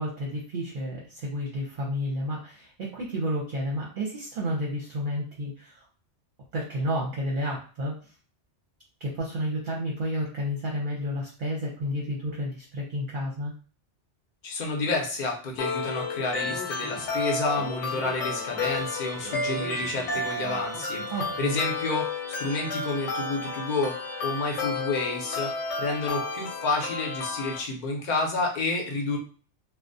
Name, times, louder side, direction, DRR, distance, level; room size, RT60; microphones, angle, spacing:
voice 1, 0.0-5.9 6.5-8.1 9.0-13.5 21.1-21.6, equal, 55° right, -3 dB, 0.7 m, -31 dB
voice 2, 14.4-21.0 21.4-23.9 24.2-29.2, left 3 dB, 50° left, 1 dB, 0.6 m, -30 dB
sound 1, 15.6-27.6, left 3 dB, 85° left, 0.9 m, -32 dB
Speech, 16.4-21.6, left 1 dB, 10° left, 0.4 m, -43 dB
2.4 x 2.0 x 2.5 m, 0.40 s
omnidirectional pair, 1.2 m